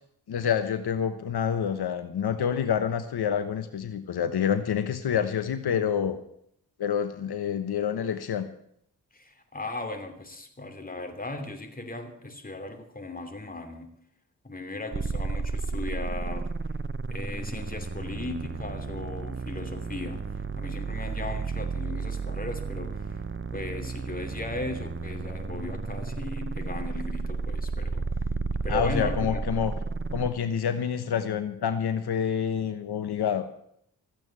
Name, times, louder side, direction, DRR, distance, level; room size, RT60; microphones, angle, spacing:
voice 1, 0.3-6.2 6.8-8.5 28.7-29.7 30.1-33.5, left 8 dB, 80° left, 10 dB, 1.1 m, -27 dB
voice 2, 9.1-13.9 14.4-16.5 17.1-20.3 20.6-23.0 23.5-28.1 28.6-29.5, left 2 dB, 20° left, 6 dB, 2.9 m, -37 dB
sound 1, 14.9-30.3, right 4 dB, 30° right, 0.9 m, -33 dB
14.5 x 8.9 x 8.8 m, 0.70 s
cardioid pair, 65°, 38 cm